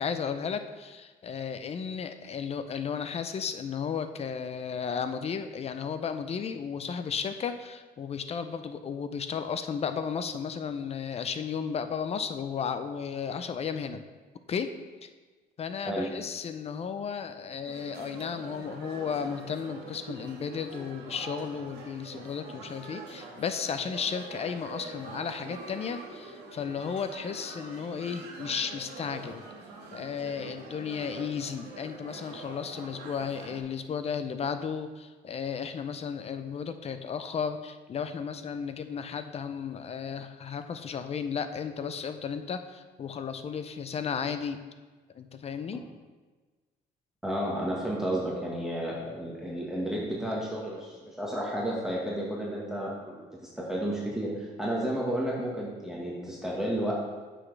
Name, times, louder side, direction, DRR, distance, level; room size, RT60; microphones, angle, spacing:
voice 1, 0.0-14.0 14.5-14.7 15.0-15.1 15.6-29.4 29.9-44.6 45.1-45.8, left 6 dB, 40° left, 9 dB, 0.6 m, -34 dB
sound 1, 17.6-33.6, right 3 dB, 75° right, 1.6 m, -44 dB
voice 2, 47.2-56.9, right 1 dB, 5° right, -5 dB, 1.5 m, -32 dB
9.4 x 6.3 x 3.3 m, 1.3 s
cardioid pair, 110°, 17 cm